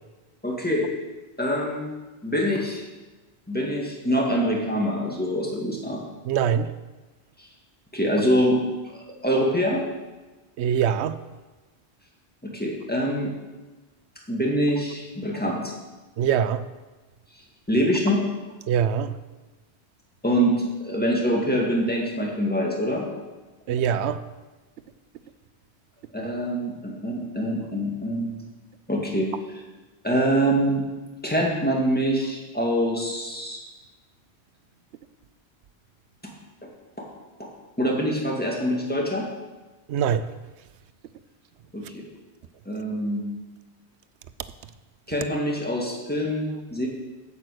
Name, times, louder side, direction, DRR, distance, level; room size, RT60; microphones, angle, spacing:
voice 1, 0.4-0.9 1.4-1.8 2.2-2.8 3.5-6.0 7.9-8.6 9.2-9.8 12.4-13.3 14.3-15.7 17.7-18.2 20.2-23.1 26.1-28.4 28.9-29.3 30.0-30.9 31.2-33.6 36.2-36.3 37.0-37.1 37.4-37.5 37.8-39.3 41.7-42.0 42.7-43.2 45.1-46.9, equal, 10° left, 2.0 m, -24 dB
voice 2, 6.3-6.7 10.6-11.2 16.2-16.6 18.7-19.1 23.7-24.2 39.9-40.3, right 8 dB, 80° right, 0.9 m, -23 dB
8.8 x 8.6 x 6.4 m
omnidirectional pair, 1.1 m